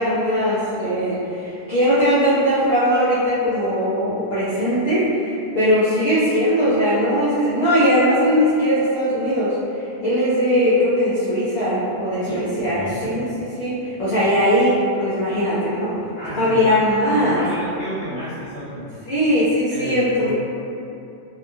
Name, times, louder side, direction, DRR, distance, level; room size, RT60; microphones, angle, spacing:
voice 1, 0.0-15.9 16.4-17.4 19.1-20.3, equal, 65° left, -11 dB, 0.8 m, -20 dB
voice 2, 12.2-13.1 16.1-16.8 17.1-18.9 19.7-20.3, equal, 45° left, -14 dB, 1.5 m, -31 dB
2.8 x 2.3 x 2.6 m, 2.7 s
omnidirectional pair, 1.2 m